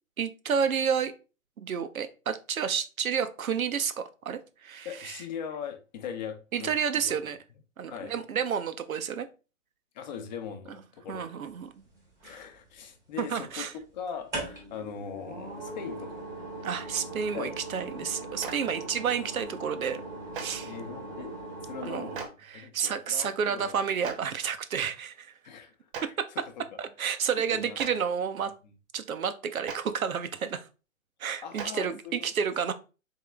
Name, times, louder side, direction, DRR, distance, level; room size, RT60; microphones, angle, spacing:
voice 1, 0.2-1.1 1.6-5.2 6.5-7.4 7.8-9.3 11.1-11.8 12.2-12.4 13.2-13.7 16.6-20.0 20.3-20.7 21.8-22.1 22.5-25.3 26.0-26.3 26.8-28.5 28.9-30.7 31.2-32.7, right 7 dB, 90° right, 0.7 m, -30 dB
voice 2, 4.8-6.7 7.0-7.1 7.9-8.1 9.9-11.3 12.2-13.7 13.9-16.2 17.3-17.6 17.9-18.1 20.6-21.3 21.6-22.2 22.5-23.7 25.4-26.2 26.4-26.6 27.6-27.8 31.4-32.3, left 7 dB, 35° left, 0.7 m, -40 dB
sound 1, 11.9-12.7 14.1-22.3, right 2 dB, 10° right, 0.8 m, -40 dB
Clapping, 18.4-18.5 20.3-20.4 22.1-22.3 24.0-24.1 25.9-26.0 27.7-27.9 29.6-29.8 31.6-31.7, right 6 dB, 40° right, 0.8 m, -36 dB
3.6 x 3.3 x 3.4 m
hypercardioid pair, 135°, 41 cm